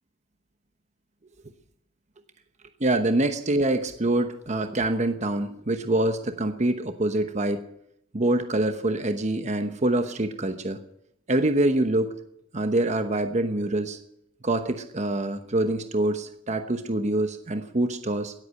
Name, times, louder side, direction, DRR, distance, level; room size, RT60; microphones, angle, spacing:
voice 1, 2.8-7.6 8.1-10.8 11.3-12.2 12.5-14.0 14.4-18.3, right 1 dB, 40° right, 8 dB, 1.0 m, -25 dB
18.0 x 8.3 x 8.9 m, 0.76 s
head